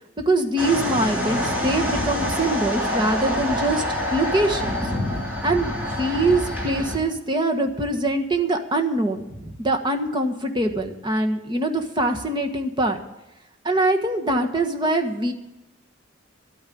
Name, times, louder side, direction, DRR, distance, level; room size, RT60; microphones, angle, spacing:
voice 1, 0.3-4.8 5.4-13.0 13.6-15.3, right 2 dB, 25° right, 5 dB, 1.4 m, -23 dB
sound 1, 0.6-7.0, equal, 10° right, 2.9 m, -26 dB
12.5 x 9.0 x 8.4 m, 0.96 s
head